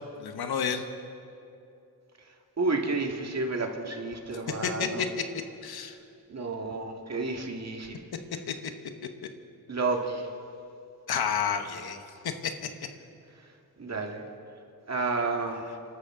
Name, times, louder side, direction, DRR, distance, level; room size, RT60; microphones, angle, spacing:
voice 1, 0.2-0.8 4.6-5.1 5.6-6.0 8.5-8.6 11.1-12.5, left 7 dB, 75° left, 8 dB, 1.1 m, -30 dB
voice 2, 2.6-5.0 6.3-8.0 9.7-10.3 13.8-14.2 14.9-15.7, right 3 dB, 45° right, 2 dB, 1.9 m, -31 dB
26.5 x 13.0 x 3.8 m, 2.7 s
cardioid pair, 75°, 37 cm